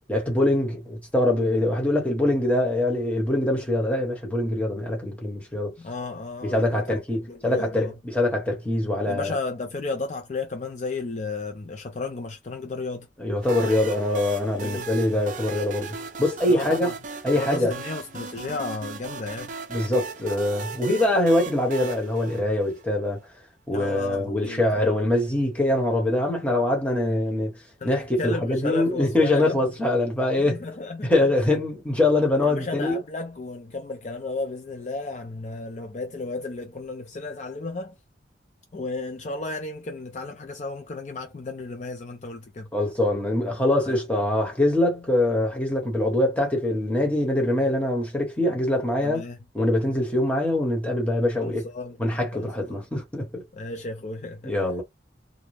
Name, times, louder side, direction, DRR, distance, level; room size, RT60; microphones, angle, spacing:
voice 1, 0.1-5.7 6.4-9.4 13.2-16.9 17.2-17.7 19.7-23.2 23.7-27.6 27.8-30.6 31.0-33.0 42.7-49.3 49.5-51.7 52.0-53.4 54.4-54.8, left 1 dB, 10° left, 1.0 m, -23 dB
voice 2, 5.8-7.0 7.3-7.9 9.0-13.1 14.6-14.9 16.5-16.9 17.3-19.5 23.7-24.9 27.8-27.9 28.2-29.6 30.4-31.1 32.4-37.9 38.7-42.7 43.9-44.0 49.0-49.4 51.4-52.0 52.3-52.8 53.5-54.5, left 3 dB, 40° left, 0.4 m, -33 dB
sound 1, 13.4-23.1, right 5 dB, 45° right, 0.4 m, -37 dB
2.6 x 2.1 x 3.1 m
head